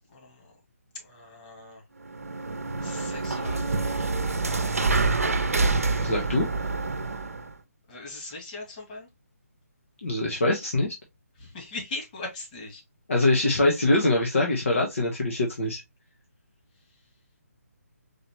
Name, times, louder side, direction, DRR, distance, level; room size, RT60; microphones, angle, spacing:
voice 1, 0.1-0.5 0.9-1.8 2.8-4.1 7.9-9.1 11.4-12.8, left 2 dB, 30° left, 2.1 m, -40 dB
sound 1, 2.0-7.5, right 3 dB, 65° right, 0.8 m, -27 dB
voice 2, 6.0-6.4 10.0-10.9 13.1-15.8, left 2 dB, 55° left, 1.3 m, -23 dB
4.9 x 3.1 x 3.0 m
figure-of-eight pair, 145°, 8 cm